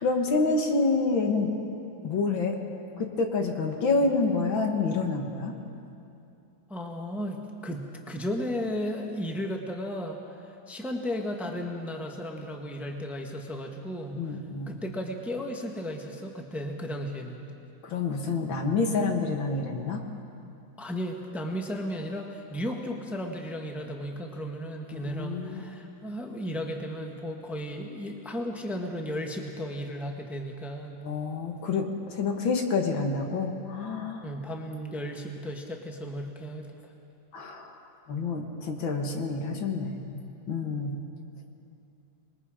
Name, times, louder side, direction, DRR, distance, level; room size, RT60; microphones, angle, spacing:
voice 1, 0.0-1.5 2.0-2.6 3.0-5.5 14.1-14.8 17.8-20.0 24.9-25.6 31.0-34.2 37.3-37.8 38.1-40.2 40.5-41.0, left 3 dB, 80° left, 3 dB, 2.4 m, -28 dB
voice 2, 6.7-14.4 14.7-17.4 20.8-31.1 34.2-36.8, equal, ahead, 2 dB, 1.2 m, -35 dB
26.0 x 21.0 x 5.1 m, 2.7 s
omnidirectional pair, 2.1 m